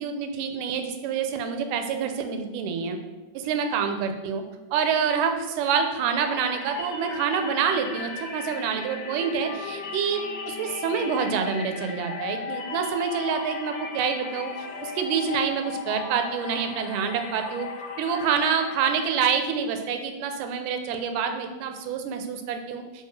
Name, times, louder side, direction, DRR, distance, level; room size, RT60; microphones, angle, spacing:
voice 1, 0.0-3.0 3.3-4.4 4.7-17.7 18.0-23.1, right 6 dB, 85° right, 6 dB, 2.2 m, -27 dB
sound 1, 6.2-19.0, left 5 dB, 75° left, 1.6 m, -36 dB
4.9 x 4.7 x 4.7 m, 1.2 s
omnidirectional pair, 3.7 m